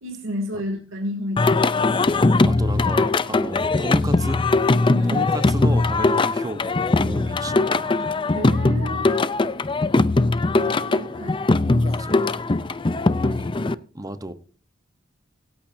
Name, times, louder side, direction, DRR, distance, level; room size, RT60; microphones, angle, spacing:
voice 1, 0.0-1.9 4.9-5.3 8.3-9.1 10.5-12.2, equal, 85° right, 1 dB, 2.6 m, -32 dB
Singing, 1.4-13.7, left 3 dB, 25° left, 0.5 m, -20 dB
voice 2, 2.5-4.4 5.1-8.2 10.6-11.2 12.0-12.3 13.0-13.5 13.9-14.3, right 1 dB, 20° right, 11 dB, 0.9 m, -33 dB
25.0 x 8.6 x 2.7 m, 0.39 s
head